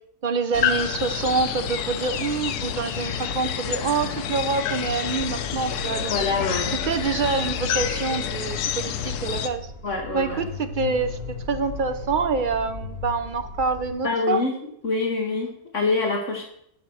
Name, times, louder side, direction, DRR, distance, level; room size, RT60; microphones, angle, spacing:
voice 1, 0.2-6.1 6.8-9.7 10.1-14.4, right 4 dB, 55° right, 9 dB, 0.5 m, -26 dB
sound 1, 0.5-9.5, left 8 dB, 90° left, 1.2 m, -28 dB
sound 2, 5.1-13.9, left 2 dB, 35° right, 4.4 m, -37 dB
voice 2, 6.1-6.7 9.8-10.4 14.0-14.5 14.8-16.4, left 3 dB, 55° left, 2 dB, 1.4 m, -25 dB
9.5 x 5.8 x 6.2 m, 0.74 s
omnidirectional pair, 1.6 m